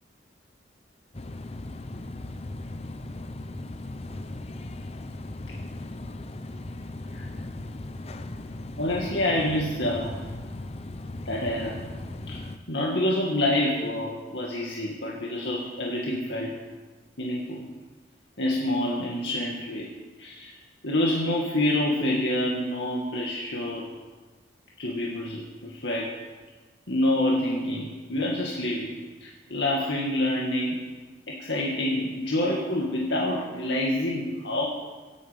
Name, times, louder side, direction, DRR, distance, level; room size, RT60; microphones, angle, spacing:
sound 1, 1.1-12.6, left 2 dB, 35° left, 0.7 m, -38 dB
voice 1, 8.8-10.3 11.3-11.9 12.3-16.6 17.2-17.7 18.4-19.9 20.2-20.5 20.8-23.9 24.8-26.2 26.9-30.8 31.3-34.7, left 1 dB, 70° left, -3 dB, 2.2 m, -27 dB
25.0 x 9.5 x 5.4 m, 1.3 s
head